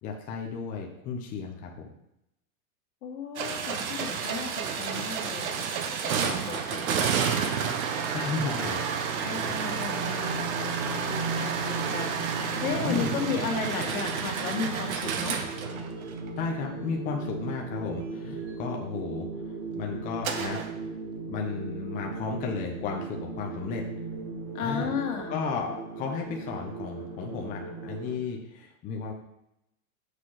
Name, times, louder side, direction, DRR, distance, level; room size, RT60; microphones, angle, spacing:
voice 1, 0.0-1.9 8.1-9.2 12.8-13.1 16.4-19.3 19.7-20.7 21.3-23.8 24.6-24.9 25.3-29.1, left 5 dB, 20° left, 0 dB, 0.8 m, -34 dB
voice 2, 3.0-5.7 6.0-7.3 9.2-10.4 11.1-15.4 24.5-25.4, left 6 dB, 75° left, 2 dB, 1.8 m, -34 dB
sound 1, 3.4-16.4 20.2-20.7, right 7 dB, 70° right, 1.2 m, -30 dB
sound 2, 8.8-28.2, right 3 dB, 25° right, 0.3 m, -37 dB
6.7 x 5.8 x 4.9 m, 0.84 s
supercardioid pair, 155°, 43 cm